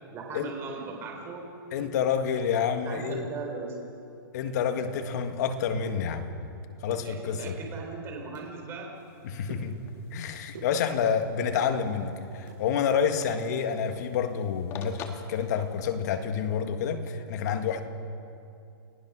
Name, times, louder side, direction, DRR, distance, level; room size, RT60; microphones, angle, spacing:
voice 1, 0.1-1.5 2.8-3.8 6.9-9.0, right 4 dB, 20° right, 4.2 m, -38 dB
voice 2, 1.7-3.3 4.3-6.3 6.8-7.5 9.2-9.8 10.1-17.8, left 7 dB, 45° left, 1.8 m, -28 dB
sound 1, 5.6-6.5 6.8-7.6 8.0-8.5 8.9-11.2 11.5-12.7 13.0-14.6 14.8-14.9 15.3-15.5 15.9-16.1, right 6 dB, 55° right, 8.0 m, -49 dB
sound 2, 8.9-15.8, left 6 dB, 20° left, 1.5 m, -49 dB
29.0 x 18.0 x 6.2 m
hypercardioid pair, 160°, 12 cm